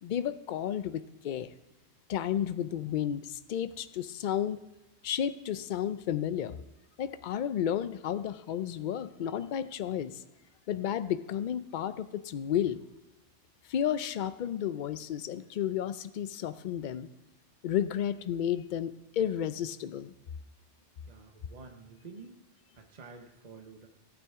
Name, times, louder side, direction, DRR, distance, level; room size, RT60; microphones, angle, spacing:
voice 1, 0.0-1.5 2.1-4.6 5.0-6.6 7.0-10.2 10.7-12.8 13.7-17.1 17.6-20.1, left 10 dB, 55° left, 13 dB, 0.5 m, -32 dB
voice 2, 21.0-22.4 22.7-23.9, right 4 dB, 40° right, 3 dB, 1.0 m, -49 dB
14.5 x 8.8 x 3.6 m, 1.0 s
omnidirectional pair, 1.2 m